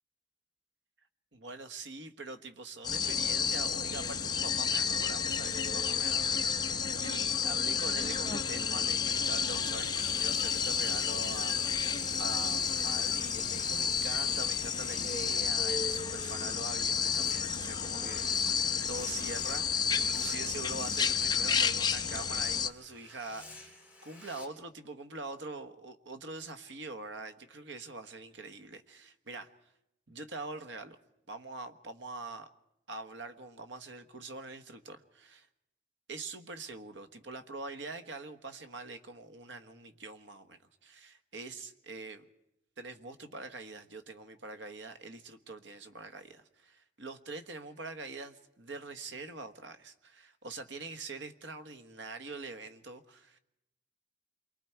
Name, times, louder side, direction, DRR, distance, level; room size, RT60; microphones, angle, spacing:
voice 1, 1.3-29.5 30.1-31.0 31.3-32.5 32.9-35.5 36.1-42.2 42.8-53.4, right 3 dB, 80° right, 8 dB, 1.3 m, -44 dB
sound 1, 2.8-22.7, left 6 dB, 25° left, 0.7 m, -31 dB
sound 2, 9.1-21.2 22.7-24.5, left 2 dB, 10° right, 3.9 m, -51 dB
28.0 x 23.5 x 4.6 m, 0.86 s
head